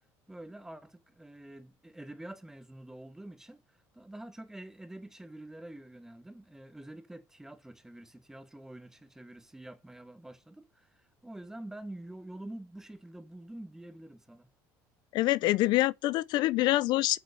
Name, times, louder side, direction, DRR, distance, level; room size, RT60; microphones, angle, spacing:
voice 1, 0.3-14.5, right 1 dB, 5° right, 1.5 m, -47 dB
voice 2, 15.1-17.2, left 17 dB, 65° left, 0.5 m, -26 dB
8.7 x 6.2 x 4.2 m
cardioid pair, 135°, 8 cm